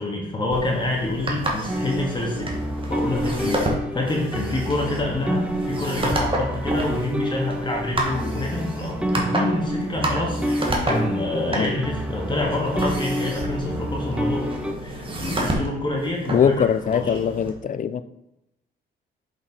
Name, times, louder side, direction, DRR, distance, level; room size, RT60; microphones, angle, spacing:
voice 1, 0.0-2.5 2.9-3.7 3.9-14.5 14.8-16.5 16.9-17.2, left 1 dB, 25° left, -2 dB, 2.1 m, -27 dB
sound 1, 0.5-17.5, right 1 dB, 25° right, 2.0 m, -30 dB
sound 2, 1.7-14.7, equal, 5° right, 0.8 m, -28 dB
voice 2, 16.3-18.0, left 7 dB, 40° left, 13 dB, 0.6 m, -22 dB
7.5 x 5.3 x 4.9 m, 0.88 s
cardioid pair, 90°, 20 cm